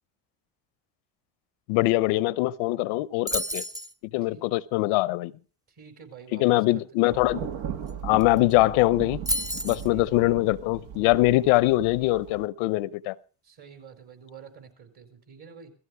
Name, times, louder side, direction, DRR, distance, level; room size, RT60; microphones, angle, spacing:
voice 1, 1.7-3.6 4.1-5.3 6.3-7.5 8.0-9.2 9.6-13.1, left 19 dB, 85° left, 0.8 m, -23 dB
sound 1, 3.3-3.9 7.9-8.0 8.2-8.5 9.3-9.9, equal, 10° right, 0.6 m, -30 dB
voice 2, 5.7-6.5 6.7-6.8 9.9-10.0 13.4-15.7, right 6 dB, 50° right, 4.7 m, -48 dB
Thunder, 7.1-12.5, right 8 dB, 75° right, 1.5 m, -38 dB
17.0 x 14.5 x 4.7 m
supercardioid pair, 80°, 49 cm